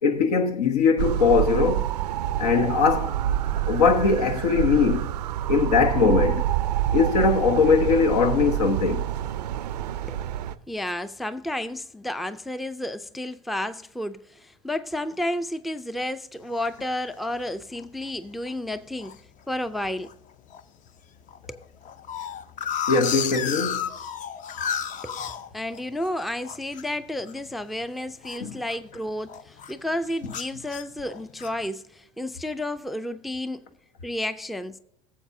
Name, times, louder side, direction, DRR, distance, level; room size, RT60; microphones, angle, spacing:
voice 1, 0.0-1.9 2.4-3.2 3.7-5.1 5.5-6.5 6.9-9.0 22.9-23.9 28.4-28.5, left 5 dB, 80° left, 1.1 m, -21 dB
sound 1, 1.0-10.5, right 11 dB, 85° right, 0.4 m, -27 dB
voice 2, 10.7-19.2 19.5-20.1 21.5-21.6 25.0-25.3 25.5-33.6 34.0-34.8, left 1 dB, ahead, 0.4 m, -31 dB
sound 2, 16.5-16.9 17.4-17.5 17.8-18.1 18.5-19.2 19.7-20.1 20.5-20.6 20.9-21.0 21.3-26.1 26.4-29.0 29.3-29.8 30.3-31.6, left 8 dB, 40° left, 0.6 m, -33 dB
18.0 x 7.3 x 2.7 m
hypercardioid pair, 85°, 20 cm